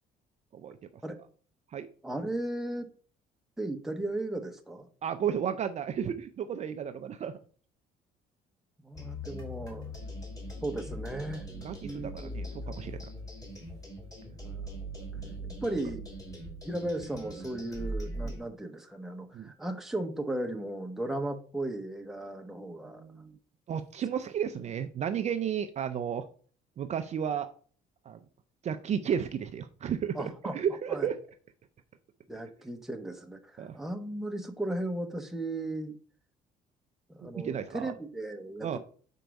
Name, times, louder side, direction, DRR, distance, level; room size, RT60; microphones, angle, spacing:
voice 1, 2.0-2.9 3.6-4.9 8.8-9.9 10.6-11.5 11.8-12.8 14.4-14.9 15.5-16.1 16.6-23.0 30.1-30.6 30.9-31.1 32.3-36.0 37.1-38.8, right 1 dB, ahead, 4 dB, 0.9 m, -36 dB
voice 2, 5.0-7.4 11.6-13.1 15.0-15.4 18.2-18.4 19.3-19.5 22.8-23.4 23.7-26.3 26.8-27.5 28.1-28.2 28.6-31.2 33.6-33.8 37.2-37.9 38.6-38.8, right 8 dB, 40° right, 8 dB, 0.5 m, -33 dB
sound 1, 8.9-18.4, equal, 20° left, 2.8 m, -40 dB
4.6 x 4.5 x 5.2 m, 0.44 s
cardioid pair, 110°, 17 cm